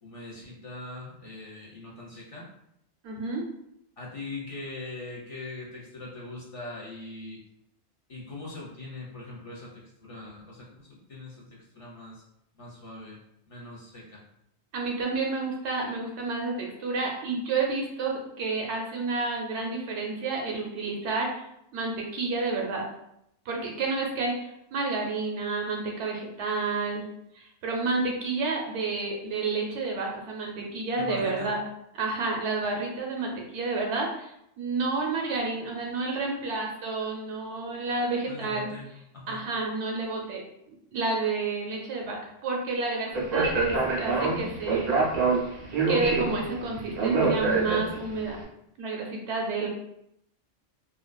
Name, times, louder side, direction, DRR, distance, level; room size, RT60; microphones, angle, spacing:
voice 1, 0.0-2.4 4.0-7.4 8.1-12.2 12.5-13.2 13.4-14.2 31.0-31.5 38.3-38.9 39.1-39.4, left 2 dB, 45° left, -5 dB, 0.4 m, -41 dB
voice 2, 3.0-3.5 14.7-21.5 21.7-22.9 23.5-27.0 27.3-31.6 31.9-34.3 34.6-38.7 39.3-40.4 40.7-44.9 45.3-45.4 45.9-48.4 48.8-49.7, right 3 dB, 75° right, 0 dB, 0.9 m, -30 dB
Speech, 43.1-48.2, right 4 dB, 55° right, 0.5 m, -26 dB
2.5 x 2.2 x 2.2 m, 0.77 s
omnidirectional pair, 1.2 m